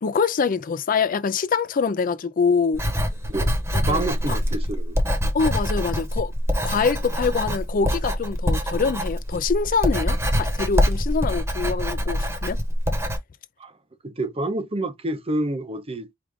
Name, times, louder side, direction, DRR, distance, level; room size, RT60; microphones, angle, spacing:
voice 1, 0.0-2.8 3.7-4.0 4.3-4.4 5.3-6.3 6.6-12.6, left 5 dB, 45° left, 0.4 m, -24 dB
Writing, 2.7-13.2, equal, 15° right, 1.1 m, -24 dB
voice 2, 3.9-5.0 13.6-13.7 14.0-16.1, right 2 dB, 30° right, 0.7 m, -28 dB
4.8 x 2.4 x 3.5 m
head